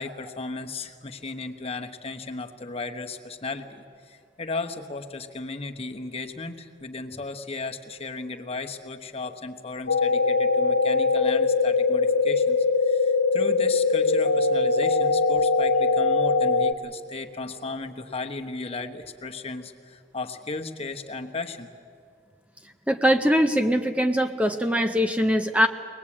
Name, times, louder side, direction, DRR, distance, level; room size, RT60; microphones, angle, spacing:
voice 1, 0.0-21.7, left 3 dB, 30° left, 5 dB, 1.1 m, -35 dB
sound 1, 9.9-16.7, left 4 dB, 75° left, 0.8 m, -21 dB
voice 2, 22.9-25.7, equal, 5° right, 6 dB, 0.6 m, -22 dB
23.5 x 19.5 x 8.6 m, 2.3 s
head